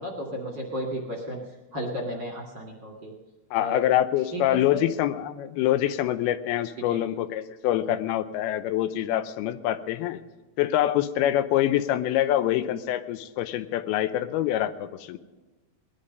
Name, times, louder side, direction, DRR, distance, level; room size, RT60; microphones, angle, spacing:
voice 1, 0.0-1.4 1.7-3.1 3.6-3.8 4.3-4.8 6.9-7.0, equal, 40° right, -1 dB, 2.0 m, -33 dB
voice 2, 3.5-10.2 10.6-15.2, left 12 dB, 90° left, 12 dB, 2.7 m, -25 dB
19.5 x 11.5 x 5.4 m, 1.2 s
omnidirectional pair, 4.3 m